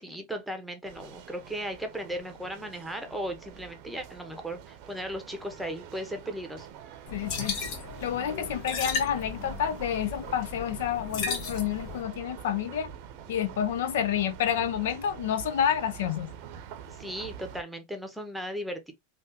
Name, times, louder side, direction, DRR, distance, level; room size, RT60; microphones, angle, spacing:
voice 1, 0.0-6.7 17.0-18.9, equal, 5° right, 0.8 m, -36 dB
sound 1, 0.8-17.6, right 9 dB, 55° right, 0.7 m, -45 dB
voice 2, 7.1-7.6 8.0-12.9 13.3-16.3, left 9 dB, 75° left, 0.5 m, -29 dB
sound 2, 7.1-12.0, left 5 dB, 55° left, 1.1 m, -35 dB
3.4 x 2.5 x 2.7 m
hypercardioid pair, 115°, 0 cm